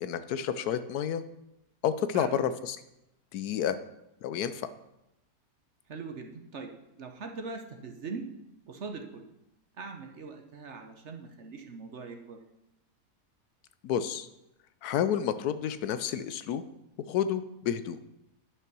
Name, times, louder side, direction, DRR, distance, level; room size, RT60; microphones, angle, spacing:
voice 1, 0.0-1.2 1.8-2.8 3.3-3.8 4.2-4.6 13.8-14.3 14.8-16.6 17.1-18.0, left 9 dB, 75° left, 12 dB, 1.1 m, -30 dB
voice 2, 5.9-6.7 7.0-8.2 8.7-9.2 9.8-12.4, right 4 dB, 50° right, 4 dB, 1.1 m, -41 dB
9.7 x 5.7 x 6.1 m, 0.88 s
omnidirectional pair, 1.7 m